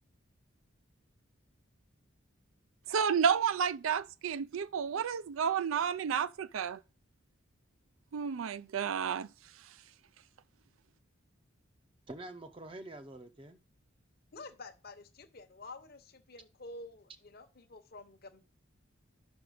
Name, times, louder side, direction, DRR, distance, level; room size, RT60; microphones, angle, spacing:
voice 1, 2.9-6.8 8.1-9.3, right 7 dB, 80° right, 0.4 m, -31 dB
voice 2, 12.1-13.6, right 1 dB, 25° right, 0.6 m, -46 dB
voice 3, 14.3-18.4, left 2 dB, 50° left, 0.9 m, -49 dB
5.9 x 5.2 x 6.3 m
head